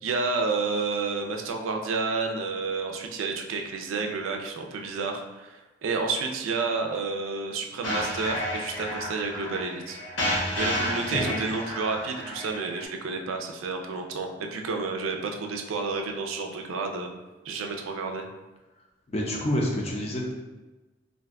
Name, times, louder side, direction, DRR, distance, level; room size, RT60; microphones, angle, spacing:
voice 1, 0.0-10.0 10.5-17.1 17.4-18.3, right 4 dB, 80° right, 3 dB, 0.4 m, -30 dB
sound 1, 7.8-12.8, left 1 dB, 70° left, 0.8 m, -31 dB
voice 2, 19.1-20.3, left 1 dB, 30° left, -1 dB, 0.5 m, -28 dB
2.5 x 2.2 x 3.5 m, 1.1 s
head